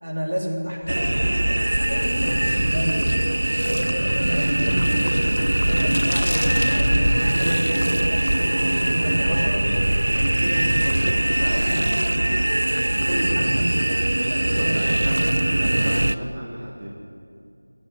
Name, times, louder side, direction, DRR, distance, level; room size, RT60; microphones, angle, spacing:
voice 1, 0.0-14.8, equal, 75° right, -1 dB, 3.5 m, -31 dB
Frog, 0.8-15.7, equal, 5° left, 2.0 m, -41 dB
sound 1, 0.9-16.2, right 1 dB, 50° right, 0.3 m, -22 dB
sound 2, 1.7-7.4, equal, 75° left, 1.7 m, -27 dB
voice 2, 14.5-16.9, equal, 10° right, -5 dB, 0.9 m, -32 dB
19.5 x 8.7 x 7.8 m, 2.6 s
figure-of-eight pair, 180°, 0 cm